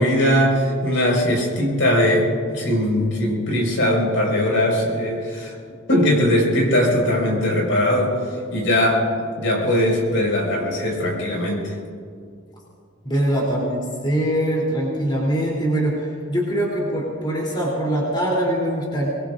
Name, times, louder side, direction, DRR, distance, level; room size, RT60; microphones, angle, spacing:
voice 1, 0.0-5.5 5.9-8.2 8.5-9.1 9.4-11.7, left 1 dB, 65° left, -1 dB, 5.2 m, -20 dB
voice 2, 13.0-19.1, right 1 dB, 20° left, -4 dB, 3.3 m, -23 dB
25.0 x 21.5 x 2.6 m, 2.2 s
head